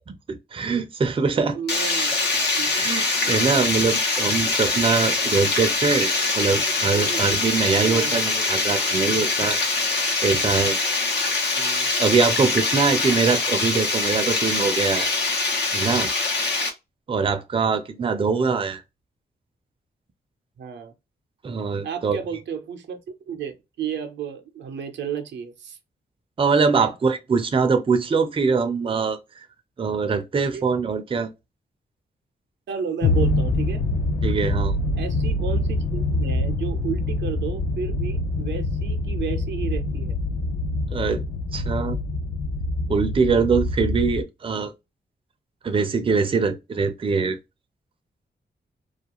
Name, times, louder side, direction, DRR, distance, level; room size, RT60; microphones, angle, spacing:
voice 1, 0.1-1.6 2.7-6.1 6.3-9.6 9.9-10.8 12.0-15.1 15.7-16.1 17.1-18.8 21.4-22.2 26.4-29.5 29.8-31.3 34.2-34.7 40.9-41.2 41.5-42.0 42.9-44.7 45.6-47.4, right 5 dB, 30° right, 0.4 m, -23 dB
voice 2, 1.3-2.3 2.6-2.7 6.9-7.4 7.8-8.2 11.6-11.9 18.0-18.4 20.6-20.9 21.8-23.0 23.3-25.8 26.8-26.9 30.5-30.6 32.7-33.8 35.0-40.2, right 7 dB, 85° right, 0.5 m, -32 dB
Water, 1.7-16.7, left 3 dB, 75° left, 0.9 m, -23 dB
sound 1, 33.0-44.2, left 2 dB, 45° left, 0.4 m, -25 dB
2.4 x 2.2 x 2.9 m
cardioid pair, 95°, 18 cm